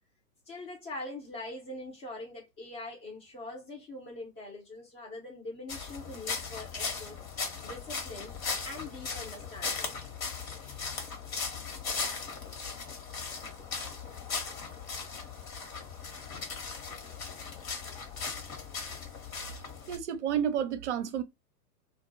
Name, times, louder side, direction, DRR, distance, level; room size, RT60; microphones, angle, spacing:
voice 1, 0.5-7.2 7.6-8.3 8.6-9.9 11.2-11.3, left 2 dB, 20° left, 0.6 m, -43 dB
sound 1, 5.7-20.0, left 5 dB, 60° left, 1.1 m, -38 dB
voice 2, 19.9-21.2, right 9 dB, 45° right, 0.6 m, -30 dB
2.4 x 2.3 x 2.6 m
figure-of-eight pair, 115°, 48 cm